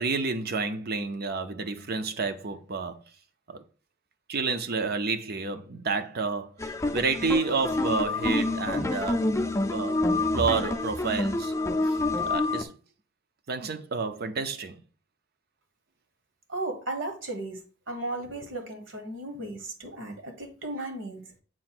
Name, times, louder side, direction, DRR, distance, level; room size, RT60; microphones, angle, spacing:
voice 1, 0.0-3.0 3.5-3.6 4.3-9.3 9.7-10.0 10.3-11.5 11.8-12.0 12.2-12.7 13.5-14.8, right 4 dB, 50° right, 0.7 m, -30 dB
sound 1, 6.6-12.6, left 2 dB, 15° left, 0.5 m, -27 dB
voice 2, 16.5-17.6 17.9-21.2, right 2 dB, 65° right, 1.4 m, -35 dB
7.6 x 2.6 x 5.8 m
head